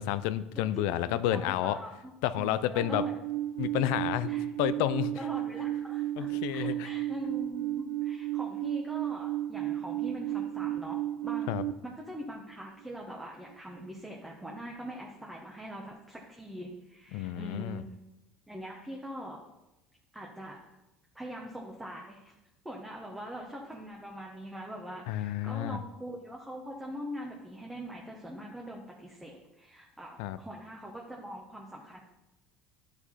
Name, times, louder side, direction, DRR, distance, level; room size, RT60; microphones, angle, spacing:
voice 1, 0.0-1.8 2.2-3.0 3.6-4.3 4.6-5.1 6.2-6.9 11.5-11.6 17.1-17.8 25.1-25.8 30.2-30.4, left 12 dB, 80° left, 14 dB, 0.4 m, -30 dB
voice 2, 0.5-3.1 4.2-4.4 5.1-11.6 11.8-17.8 18.5-19.4 20.1-20.7 21.1-22.3 22.6-32.0, equal, 10° right, -1 dB, 1.0 m, -43 dB
Alarm, 2.8-11.7, right 14 dB, 80° right, 0.4 m, -33 dB
10.0 x 4.9 x 4.2 m, 0.97 s
supercardioid pair, 115°, 0 cm